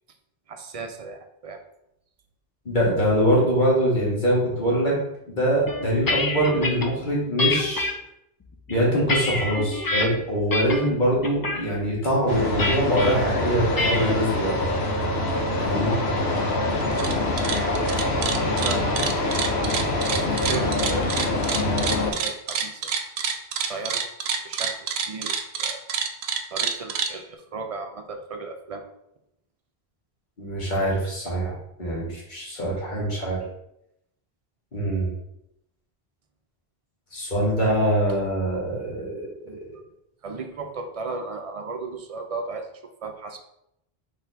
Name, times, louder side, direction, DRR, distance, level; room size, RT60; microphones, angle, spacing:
voice 1, 0.5-1.6 18.2-18.8 20.2-21.4 21.9-22.9 23.7-24.0 24.4-25.8 26.5-28.8 39.5-39.8 40.2-42.7 43.0-43.4, right 4 dB, 45° right, 6 dB, 0.5 m, -35 dB
voice 2, 2.6-4.9 5.3-7.9 8.7-14.5 15.6-16.0 30.4-31.5 31.8-33.4 34.7-35.1 37.1-39.3, equal, 50° left, -5 dB, 1.6 m, -23 dB
sound 1, 5.7-6.9 7.4-7.9 8.5-10.1 10.5-10.9 11.2-11.6 12.6-13.1 13.8-14.1, left 2 dB, 35° left, 0.3 m, -26 dB
sound 2, 12.3-22.1, left 2 dB, 75° left, 1.1 m, -25 dB
sound 3, 16.8-17.1 17.4-27.1, right 6 dB, 80° right, 0.8 m, -27 dB
4.2 x 3.1 x 4.0 m, 0.80 s
omnidirectional pair, 1.0 m